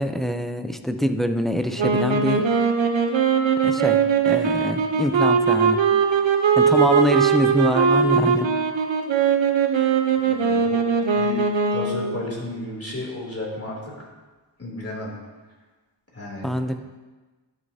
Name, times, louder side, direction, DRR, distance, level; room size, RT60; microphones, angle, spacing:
voice 1, 0.0-2.5 3.6-5.8 6.6-8.5 16.4-16.8, equal, ahead, 7 dB, 0.5 m, -24 dB
sound 1, 1.8-12.2, right 6 dB, 80° right, 0.9 m, -20 dB
voice 2, 10.2-10.8 11.1-11.4 11.7-13.8 14.6-15.1 16.1-16.5, left 1 dB, 30° left, -4 dB, 3.0 m, -33 dB
12.5 x 6.7 x 2.8 m, 1.3 s
wide cardioid pair, 50°, 45 cm